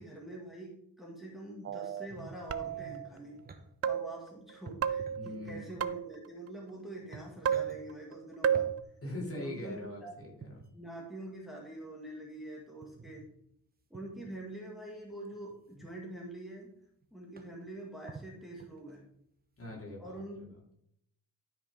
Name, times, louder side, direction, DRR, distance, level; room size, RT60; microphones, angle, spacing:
voice 1, 0.0-3.4 3.8-8.7 9.4-10.1 10.7-13.2 13.9-16.7 17.1-19.0 20.0-20.7, right 1 dB, ahead, -3 dB, 1.9 m, -45 dB
sound 1, 1.6-2.1 2.5-3.1 3.8-4.3 4.8-6.3 7.5-8.1 8.4-8.8, right 8 dB, 45° right, 0.5 m, -32 dB
sound 2, 2.1-3.6 4.7-5.9 6.6-6.7 7.0-7.8 8.5-8.7 10.2-10.7 12.8-13.3 13.9-14.3 15.3-15.9 16.6-16.7 17.0-17.1 17.4-17.7 18.1-19.0 19.6-19.8, right 4 dB, 25° right, 0.9 m, -50 dB
voice 2, 5.2-5.8 9.0-10.6 19.6-20.4, left 1 dB, 40° left, -2 dB, 2.8 m, -42 dB
12.0 x 5.3 x 3.6 m, 0.71 s
wide cardioid pair, 130°, 35 cm